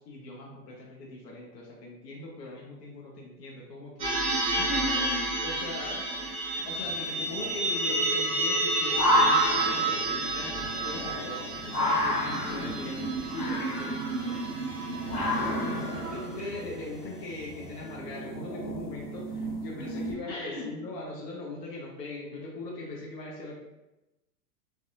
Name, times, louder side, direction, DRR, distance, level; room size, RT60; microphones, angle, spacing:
voice 1, 0.0-4.7 5.4-6.0 6.6-14.6 15.5-23.6, left 2 dB, 85° left, -2 dB, 0.7 m, -41 dB
sound 1, 4.0-16.5, right 2 dB, 15° right, 0.4 m, -30 dB
voice 2, 4.5-5.4 15.1-15.4 15.7-16.3 16.8-16.9 20.3-20.7, left 2 dB, 35° left, -3 dB, 0.8 m, -38 dB
sound 2, 6.7-20.1, left 1 dB, 65° left, 1.0 m, -32 dB
2.6 x 2.2 x 2.5 m, 0.99 s
hypercardioid pair, 125°, 48 cm